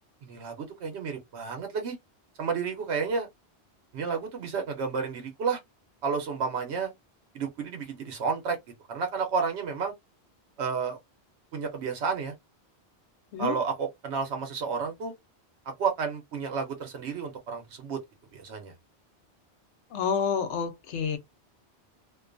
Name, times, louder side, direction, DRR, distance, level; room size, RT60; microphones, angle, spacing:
voice 1, 0.2-2.0 2.4-3.3 3.9-5.6 6.0-6.9 7.3-8.6 8.9-9.9 10.6-11.0 11.5-12.3 13.4-15.1 15.8-18.0 18.3-18.7, right 5 dB, 80° right, 1.0 m, -31 dB
voice 2, 19.9-21.2, left 6 dB, 90° left, 0.9 m, -28 dB
2.5 x 2.3 x 2.4 m
omnidirectional pair, 1.1 m